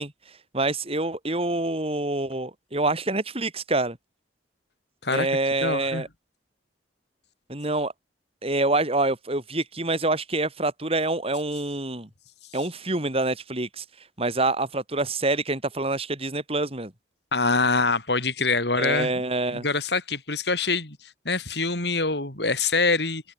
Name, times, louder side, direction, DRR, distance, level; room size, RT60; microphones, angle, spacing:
voice 1, 0.0-4.0 5.1-6.1 7.5-7.9 8.4-12.1 12.5-16.9 18.8-19.6, right 2 dB, 35° right, 4.9 m, -26 dB
voice 2, 5.6-6.0 17.3-19.2 19.5-23.2, left 3 dB, 65° left, 7.0 m, -25 dB
open air
head